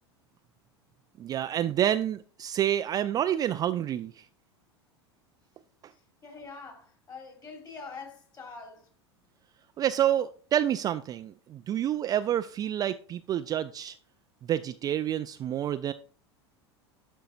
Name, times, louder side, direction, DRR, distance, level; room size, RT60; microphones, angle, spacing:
voice 1, 1.2-4.3 5.8-5.9 9.8-14.0 14.4-15.9, right 11 dB, 25° right, 0.3 m, -28 dB
voice 2, 5.9-8.9, left 4 dB, 30° left, 3.4 m, -45 dB
11.5 x 5.6 x 2.5 m
figure-of-eight pair, 80°, 14 cm